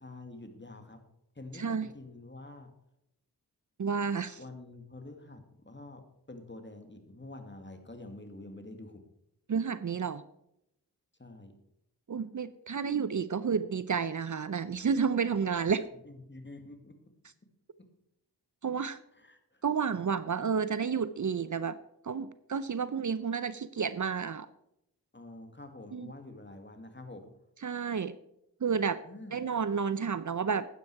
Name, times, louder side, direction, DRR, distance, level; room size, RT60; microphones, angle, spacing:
voice 1, 0.0-1.0 1.4-2.7 4.4-6.0 6.3-9.0 11.2-11.5 16.0-16.9 19.1-19.6 25.1-27.3 29.0-29.4, left 2 dB, 25° left, 6 dB, 2.2 m, -47 dB
voice 2, 1.5-1.9 3.8-4.4 9.5-10.2 12.1-15.8 18.6-19.0 19.6-21.8 22.0-24.5 25.9-26.1 27.6-28.2 28.6-29.0 29.3-30.7, right 6 dB, 50° right, 15 dB, 0.6 m, -31 dB
12.0 x 9.4 x 4.7 m, 0.81 s
cardioid pair, 45°, 40 cm